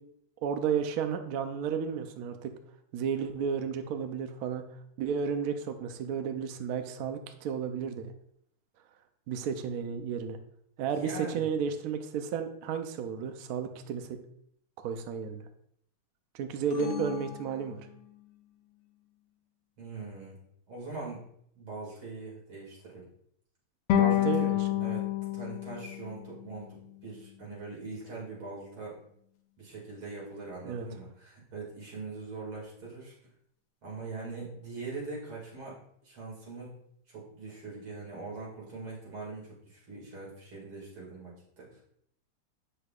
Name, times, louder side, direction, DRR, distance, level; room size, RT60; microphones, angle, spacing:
voice 1, 0.4-2.5 2.9-4.7 5.0-8.1 9.3-10.4 10.8-14.2 14.8-15.4 16.3-17.9 24.0-24.8 30.6-30.9, right 7 dB, 85° right, 7 dB, 0.8 m, -33 dB
voice 2, 10.9-11.5 19.8-20.4 20.7-21.2 21.5-23.1 24.1-29.0 29.6-33.2 33.8-35.8 36.0-36.8 37.1-41.8, right 3 dB, 65° right, -4 dB, 3.1 m, -42 dB
sound 1, 16.7-18.4, left 7 dB, 60° left, 1.5 m, -39 dB
sound 2, 23.9-27.0, left 12 dB, 85° left, 1.6 m, -29 dB
7.8 x 6.5 x 2.4 m, 0.68 s
omnidirectional pair, 2.4 m